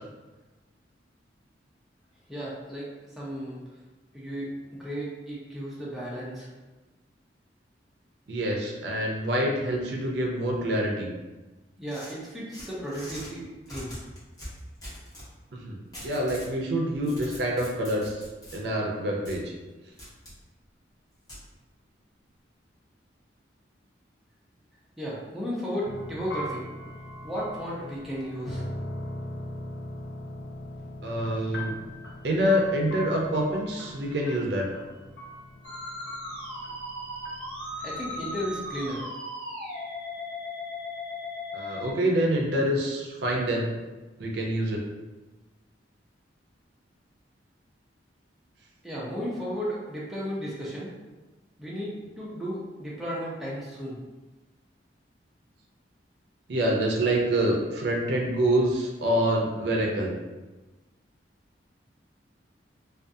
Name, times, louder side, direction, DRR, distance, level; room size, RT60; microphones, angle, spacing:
voice 1, 2.3-3.6 4.1-4.5 4.8-6.5 11.8-13.9 25.0-26.6 27.2-28.6 37.8-39.0 48.8-50.9 51.6-54.0, equal, ahead, -7 dB, 0.4 m, -34 dB
voice 2, 8.3-11.1 15.5-18.2 18.5-19.4 31.0-31.8 32.2-34.7 41.5-43.7 44.2-44.8 56.5-60.1, right 1 dB, 65° right, -1 dB, 0.5 m, -26 dB
sound 1, 11.9-13.3 13.7-15.3 15.9-16.5 16.9-18.6 19.3-19.4 20.0-20.4 21.3-21.4, equal, 20° left, 0.9 m, -43 dB
sound 2, 25.8-39.0, equal, 70° left, 0.5 m, -40 dB
Musical instrument, 35.6-41.9, left 1 dB, 25° right, 0.9 m, -37 dB
2.4 x 2.3 x 2.6 m, 1.2 s
head